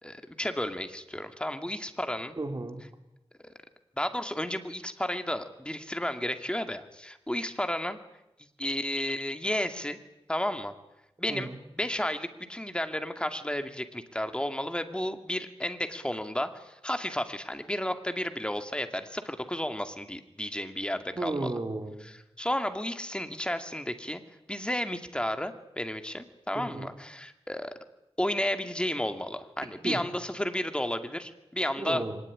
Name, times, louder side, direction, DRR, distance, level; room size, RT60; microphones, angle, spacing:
voice 1, 0.0-2.4 3.4-3.5 4.0-8.0 8.6-10.0 10.3-10.7 11.2-11.5 11.8-21.5 22.0-24.2 24.5-27.7 28.2-32.0, left 1 dB, 10° left, 7 dB, 2.2 m, -32 dB
voice 2, 2.4-2.8 11.3-11.6 21.2-22.0 26.5-26.9 29.8-30.0 31.8-32.2, right 2 dB, 40° right, 4 dB, 4.0 m, -33 dB
24.0 x 19.5 x 10.0 m, 0.91 s
wide cardioid pair, 95°, 10 cm